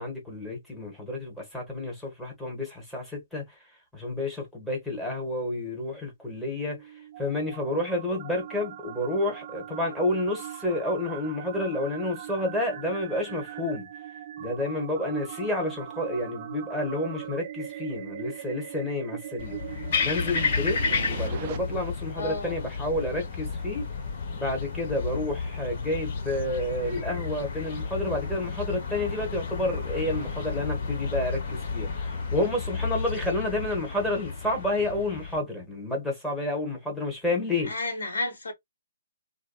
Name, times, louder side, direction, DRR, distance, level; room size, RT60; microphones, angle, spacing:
voice 1, 0.0-3.6 3.9-6.9 7.2-13.9 14.4-19.6 20.0-20.8 21.1-23.9 24.3-37.7, left 1 dB, ahead, 1.1 m, -30 dB
sound 1, 6.5-21.6, right 11 dB, 40° right, 0.3 m, -40 dB
sound 2, 19.4-35.4, left 4 dB, 50° left, 1.0 m, -32 dB
voice 2, 22.1-22.6 37.7-38.5, left 2 dB, 70° left, 1.3 m, -31 dB
2.5 x 2.3 x 2.3 m
figure-of-eight pair, 140°, 0 cm